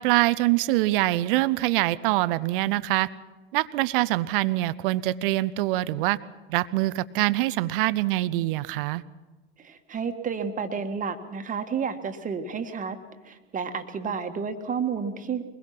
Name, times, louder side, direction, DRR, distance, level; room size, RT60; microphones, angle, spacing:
voice 1, 0.0-3.1 3.5-6.2 6.5-9.0, right 17 dB, 55° right, 18 dB, 0.7 m, -24 dB
voice 2, 9.6-13.0 13.2-15.4, right 6 dB, 25° right, 7 dB, 1.7 m, -31 dB
23.0 x 21.0 x 5.9 m, 1.2 s
figure-of-eight pair, 75°, 32 cm